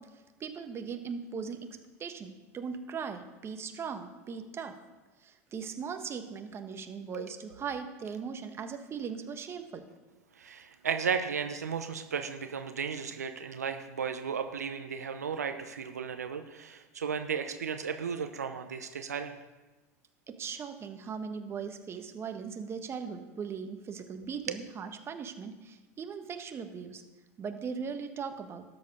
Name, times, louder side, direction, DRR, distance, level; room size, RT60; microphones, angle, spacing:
voice 1, 0.0-1.7 2.0-4.7 5.2-9.8 20.3-27.0 27.4-28.6, right 6 dB, 30° right, 7 dB, 1.3 m, -39 dB
voice 2, 10.4-19.3, right 6 dB, 85° right, 7 dB, 0.7 m, -35 dB
13.0 x 7.4 x 5.3 m, 1.2 s
hypercardioid pair, 85°, 8 cm